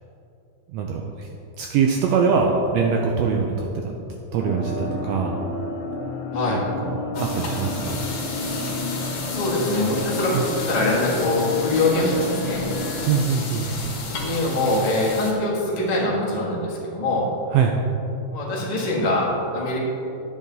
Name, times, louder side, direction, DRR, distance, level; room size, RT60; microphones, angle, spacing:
voice 1, 0.7-1.3 1.6-5.3 6.5-8.0 10.3-10.5 13.1-13.7 17.5-17.8, right 6 dB, 85° right, 1 dB, 1.4 m, -23 dB
sound 1, 4.4-13.2, left 2 dB, 85° left, 1.1 m, -31 dB
sound 2, 7.1-15.3, left 3 dB, 55° left, 2.0 m, -33 dB
voice 2, 9.3-12.6 14.2-17.2 18.3-19.8, left 2 dB, 30° left, -5 dB, 0.7 m, -23 dB
9.9 x 7.1 x 4.0 m, 2.9 s
omnidirectional pair, 3.6 m